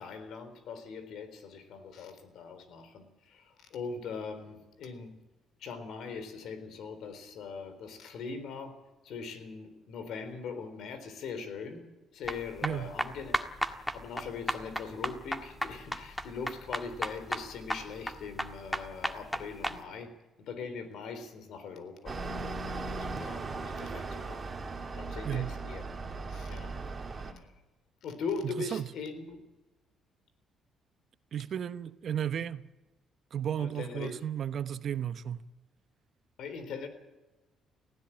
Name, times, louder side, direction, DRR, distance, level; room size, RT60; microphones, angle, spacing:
voice 1, 0.0-5.2 5.6-8.8 9.0-13.4 13.9-20.1 20.4-22.2 22.7-24.4 24.9-25.8 26.3-26.7 27.1-27.5 28.0-29.4 33.6-34.1 36.4-36.9, left 5 dB, 75° left, 3.8 m, -41 dB
sound 1, 12.2-19.8, equal, 5° left, 1.6 m, -34 dB
sound 2, 22.1-27.3, right 3 dB, 25° right, 2.8 m, -38 dB
voice 2, 31.3-32.7 33.3-35.4, right 9 dB, 55° right, 0.9 m, -34 dB
19.0 x 16.5 x 8.7 m
cardioid pair, 100°, 0 cm